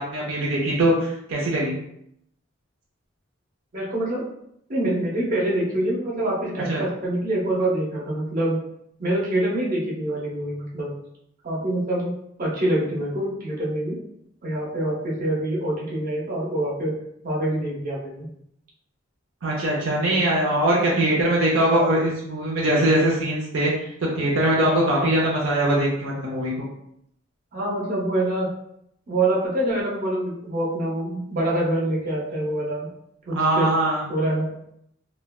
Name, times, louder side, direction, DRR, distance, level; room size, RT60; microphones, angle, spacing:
voice 1, 0.0-1.8 6.7-6.8 19.4-26.7 33.3-34.0, right 1 dB, 75° right, -3 dB, 0.6 m, -22 dB
voice 2, 3.7-4.2 4.7-8.6 9.0-10.9 11.4-14.0 14.4-17.0 17.2-18.3 25.0-25.1 27.5-28.5 29.1-32.9 33.3-33.7 34.1-34.5, right 1 dB, 45° right, -5 dB, 0.8 m, -25 dB
3.1 x 2.2 x 2.3 m, 0.74 s
head